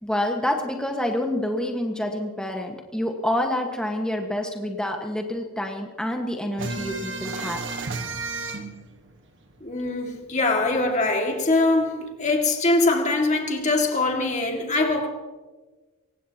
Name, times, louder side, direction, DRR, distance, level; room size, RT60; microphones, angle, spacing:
voice 1, 0.0-7.6, left 1 dB, 5° left, 1.4 m, -27 dB
sound 1, 6.6-9.9 10.2-10.3 10.6-11.6, right 3 dB, 60° right, 1.4 m, -33 dB
voice 2, 9.6-15.1, left 2 dB, 35° left, 2.1 m, -23 dB
23.5 x 19.5 x 2.9 m
head